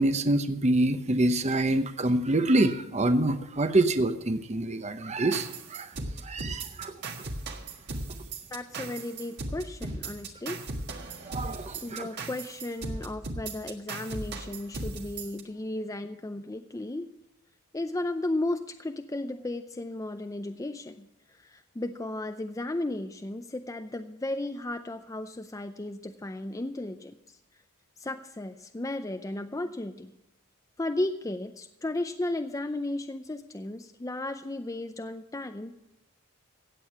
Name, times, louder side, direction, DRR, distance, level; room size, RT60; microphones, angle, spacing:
voice 1, 0.0-5.9 6.3-6.9 11.3-12.1, right 1 dB, 30° right, 10 dB, 0.8 m, -26 dB
sound 1, 5.3-15.4, right 2 dB, 50° right, 1.5 m, -37 dB
voice 2, 8.5-10.6 11.7-17.1 17.7-21.1 21.4-27.1 28.0-30.1 30.8-35.7, left 2 dB, 15° left, 7 dB, 0.4 m, -34 dB
16.0 x 8.4 x 5.8 m, 0.90 s
head